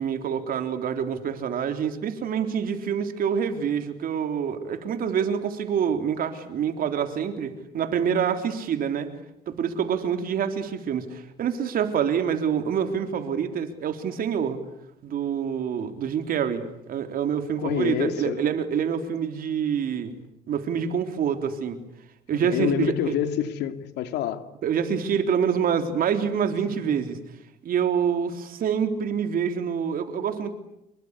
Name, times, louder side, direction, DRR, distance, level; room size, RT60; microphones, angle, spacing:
voice 1, 0.0-9.1 9.5-14.6 15.0-16.6 16.9-20.1 20.5-21.8 22.3-23.1 24.6-27.2 27.6-30.5, right 7 dB, 60° right, 7 dB, 3.8 m, -26 dB
voice 2, 17.6-18.4 22.3-24.5 26.9-27.0, left 10 dB, 80° left, 9 dB, 2.6 m, -27 dB
27.0 x 23.5 x 8.3 m, 0.84 s
cardioid pair, 110°, 17 cm